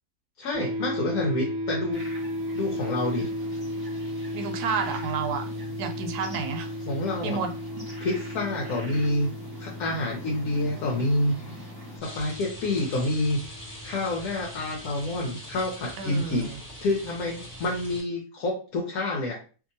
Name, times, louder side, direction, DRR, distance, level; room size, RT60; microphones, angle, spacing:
voice 1, 0.4-2.1 2.5-3.3 6.9-7.4 8.0-9.3 9.6-11.3 12.0-13.4 13.8-16.5 16.8-19.4, left 2 dB, 75° left, -1 dB, 1.1 m, -28 dB
sound 1, 0.5-15.8, left 1 dB, 65° right, 0.9 m, -35 dB
sound 2, 1.9-12.0, equal, 15° right, 1.1 m, -45 dB
voice 2, 4.3-5.5 5.8-6.7 7.2-7.5 16.0-16.6, right 5 dB, 90° right, 6 dB, 1.1 m, -30 dB
Rain, 12.0-18.0, equal, 20° left, 0.6 m, -42 dB
2.7 x 2.5 x 2.6 m, 0.37 s
omnidirectional pair, 1.6 m